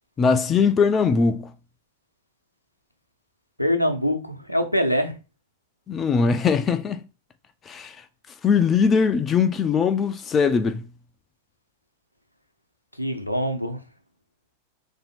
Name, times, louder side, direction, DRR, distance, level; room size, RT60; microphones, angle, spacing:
voice 1, 0.2-1.5 5.9-7.0 7.7-8.0 8.4-10.8, left 5 dB, 25° left, 0.4 m, -21 dB
voice 2, 3.6-5.1 13.0-13.8, equal, 90° left, 0.7 m, -24 dB
3.4 x 2.7 x 4.2 m
figure-of-eight pair, 90°, 0 cm